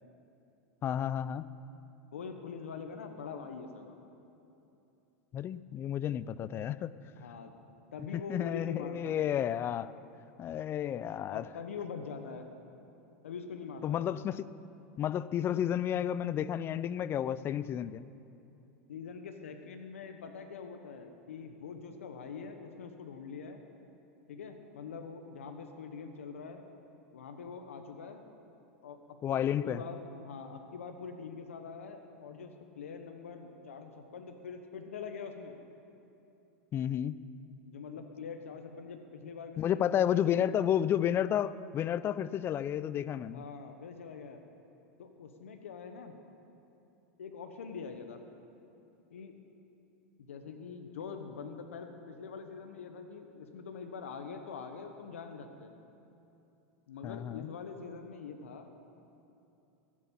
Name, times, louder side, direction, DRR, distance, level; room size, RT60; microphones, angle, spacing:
voice 1, 0.8-1.5 5.3-6.9 8.1-9.9 10.4-11.5 13.8-14.5 15.0-18.1 29.2-29.8 36.7-37.1 39.6-43.4 57.0-57.5, left 10 dB, 35° left, 16 dB, 0.4 m, -31 dB
voice 2, 2.1-4.0 7.2-7.6 7.9-9.3 11.3-12.5 13.2-14.2 18.9-23.6 24.3-26.6 27.1-28.2 28.8-35.6 37.7-40.5 43.3-44.4 45.0-46.1 47.2-48.2 49.1-49.3 50.3-55.7 56.9-58.7, left 5 dB, 90° left, 6 dB, 1.1 m, -44 dB
14.0 x 7.5 x 8.6 m, 2.8 s
hypercardioid pair, 105°, 7 cm